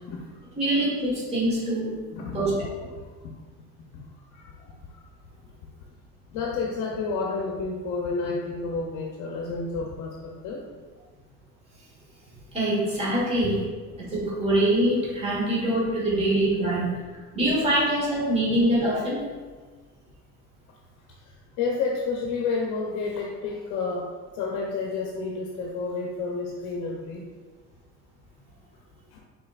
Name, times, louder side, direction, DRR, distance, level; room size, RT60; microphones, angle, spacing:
voice 1, 0.6-1.9 2.3-2.5 12.5-13.6 14.0-16.9 17.3-19.2, right 1 dB, 20° right, -5 dB, 1.4 m, -24 dB
voice 2, 2.1-2.4 3.2-3.3 3.9-4.1 4.3-5.1 6.3-10.6 13.4-13.5 21.2-27.2 29.1-29.2, left 4 dB, 65° left, -1 dB, 0.7 m, -30 dB
5.4 x 3.8 x 2.4 m, 1.4 s
cardioid pair, 145°, 33 cm